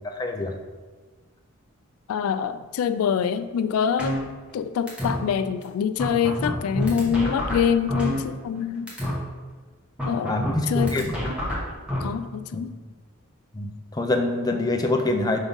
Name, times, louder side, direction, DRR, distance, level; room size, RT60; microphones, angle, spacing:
voice 1, 0.0-0.5 10.3-11.1 12.5-12.6 13.6-13.7 13.9-15.4, left 2 dB, 20° left, 4 dB, 0.4 m, -25 dB
voice 2, 2.1-4.1 4.5-8.9 10.1-10.4 10.7-11.1 12.0-12.7, left 7 dB, 85° left, 13 dB, 0.3 m, -25 dB
sound 1, 4.0-4.6 4.9-5.1 5.6-5.7 6.0-8.6 8.9-9.1 10.0-12.0, left 1 dB, 5° right, 1.1 m, -27 dB
5.3 x 3.6 x 5.3 m, 1.4 s
head